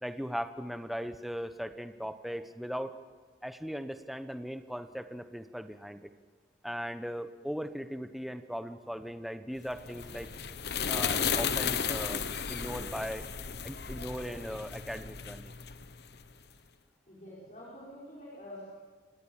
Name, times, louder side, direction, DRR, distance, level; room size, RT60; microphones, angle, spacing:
voice 1, 0.0-2.9 3.4-6.1 6.6-10.3 10.8-12.2 12.5-13.3 13.6-15.5, equal, ahead, 9 dB, 0.9 m, -38 dB
sound 1, 9.7-16.3, left 7 dB, 60° left, 1.0 m, -34 dB
voice 2, 17.1-18.7, left 1 dB, 40° left, -5 dB, 5.3 m, -47 dB
30.0 x 19.0 x 7.2 m, 1.4 s
head